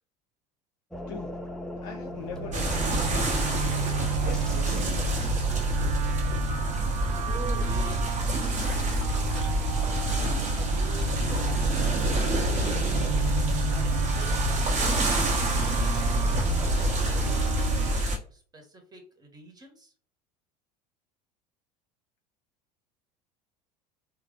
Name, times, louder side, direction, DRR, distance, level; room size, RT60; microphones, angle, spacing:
franks lab, 0.9-5.4, left 1 dB, 5° left, 0.7 m, -41 dB
voice 1, 1.1-1.4 1.8-3.4 4.2-5.0, left 7 dB, 55° left, 3 dB, 0.5 m, -41 dB
sound 1, 2.0-17.9, right 6 dB, 75° right, 0.5 m, -32 dB
sound 2, 2.5-18.2, right 1 dB, 40° right, 1.2 m, -27 dB
voice 2, 7.1-9.3 9.8-12.8 13.6-19.9, right 2 dB, 20° right, 2 dB, 1.3 m, -46 dB
3.2 x 2.3 x 3.8 m, 0.41 s
figure-of-eight pair, 70°, 21 cm